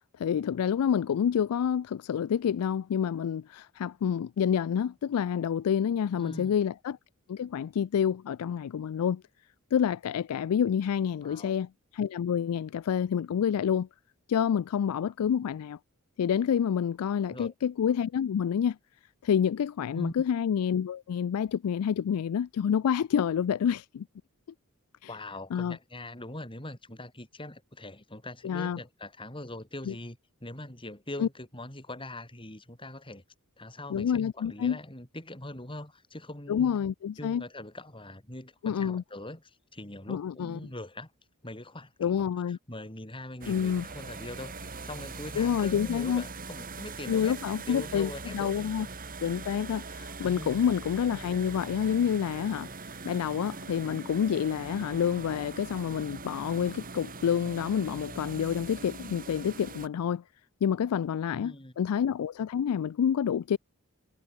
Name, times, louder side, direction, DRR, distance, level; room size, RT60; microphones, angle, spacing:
voice 1, 0.2-7.0 7.3-9.2 9.7-13.9 14.3-15.8 16.2-18.8 19.2-24.1 25.5-25.8 28.4-28.8 29.9-30.0 31.2-31.3 33.9-34.8 36.5-37.4 38.6-39.0 40.1-40.6 42.0-42.6 43.5-43.8 45.4-46.2 47.1-48.9 49.2-60.2 60.6-63.6, left 8 dB, 85° left, 0.3 m, -28 dB
voice 2, 6.1-6.6 11.2-11.5 17.2-17.5 19.9-20.2 25.1-33.2 33.6-36.7 37.2-41.1 41.4-48.7 50.2-50.8 61.3-61.7, left 1 dB, 25° left, 5.7 m, -42 dB
sound 1, 43.4-59.9, right 3 dB, 40° right, 3.1 m, -42 dB
head